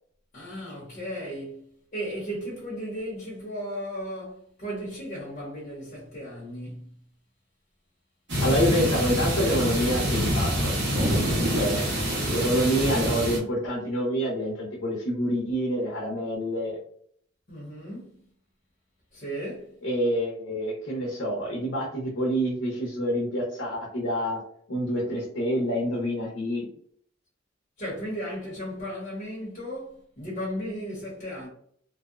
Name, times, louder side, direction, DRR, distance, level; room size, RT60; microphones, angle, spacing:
voice 1, 0.3-6.9 17.5-18.2 19.1-19.8 27.8-31.5, equal, 45° left, 0.8 m, -35 dB
sound 1, 8.3-13.4, equal, 65° right, 1.0 m, -26 dB
voice 2, 8.4-11.2 11.5-11.9 12.3-16.8 19.8-24.4 24.7-26.7, equal, 90° left, 0.7 m, -27 dB
2.7 x 2.0 x 2.4 m
head